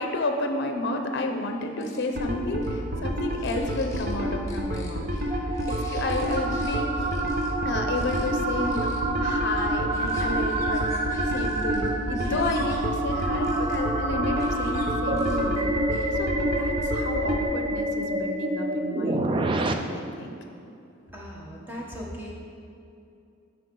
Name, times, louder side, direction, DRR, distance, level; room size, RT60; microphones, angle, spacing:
voice 1, 0.0-7.1 7.6-15.7 16.1-20.3, left 2 dB, 55° left, 4 dB, 0.6 m, -31 dB
sound 1, 1.6-2.3 2.6-2.7 3.2-4.1 4.5-6.8 7.1-7.5 7.9-8.3 8.6-13.8 14.3-14.8 15.2-16.2, left 2 dB, 15° left, 0.9 m, -49 dB
sound 2, 2.2-17.4, equal, 50° right, 0.8 m, -30 dB
sound 3, 4.7-19.7, right 1 dB, 25° right, 0.3 m, -28 dB
voice 2, 21.1-22.3, equal, 10° right, -4 dB, 1.0 m, -38 dB
10.0 x 4.7 x 3.8 m, 2.6 s
head